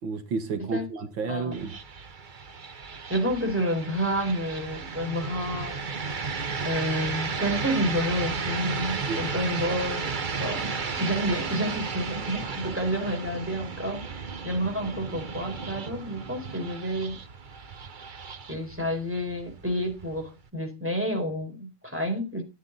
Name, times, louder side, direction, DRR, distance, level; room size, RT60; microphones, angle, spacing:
voice 1, 0.0-1.8 9.1-9.3, right 4 dB, 90° right, 2.4 m, -31 dB
voice 2, 1.2-1.6 3.1-5.9 6.6-17.2 18.5-22.4, equal, 5° right, 4.4 m, -29 dB
sound 1, 1.5-20.5, right 5 dB, 40° right, 0.8 m, -34 dB
14.0 x 9.5 x 4.0 m
omnidirectional pair, 2.0 m